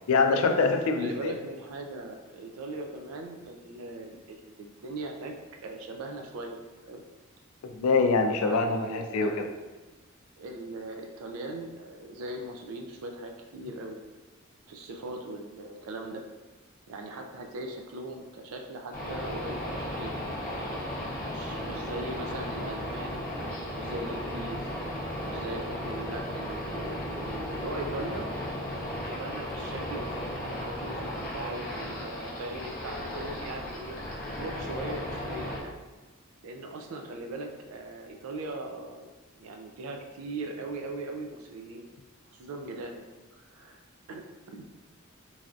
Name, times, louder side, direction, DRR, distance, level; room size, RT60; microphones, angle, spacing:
voice 1, 0.1-1.3 7.6-9.3, left 4 dB, 90° left, 5 dB, 0.4 m, -24 dB
voice 2, 1.0-5.3 5.6-6.6 6.9-7.0 8.4-9.6 10.4-14.0 14.7-16.2 16.9-20.2 21.2-23.2 23.8-24.8 25.2-28.3 29.0-34.0 34.4-35.8 36.4-39.1 39.4-41.9 42.4-43.0 43.4-43.8 44.1-44.2 44.5-44.6, right 2 dB, 90° right, 3 dB, 0.4 m, -39 dB
sound 1, 18.9-35.6, equal, 40° left, 0.6 m, -35 dB
3.2 x 2.3 x 2.5 m, 1.2 s
head